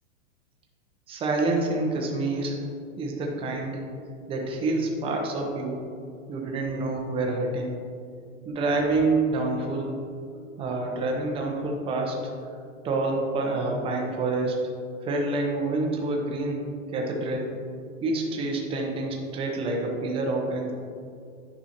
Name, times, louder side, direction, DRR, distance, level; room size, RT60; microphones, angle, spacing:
voice 1, 1.1-2.6 3.0-3.8 4.3-5.8 6.3-7.7 8.5-9.9 10.6-12.2 12.8-14.5 15.0-16.6 16.9-17.5 18.0-20.7, right 2 dB, 15° right, 0 dB, 0.7 m, -27 dB
9.1 x 5.6 x 2.8 m, 2.5 s
hypercardioid pair, 145°, 41 cm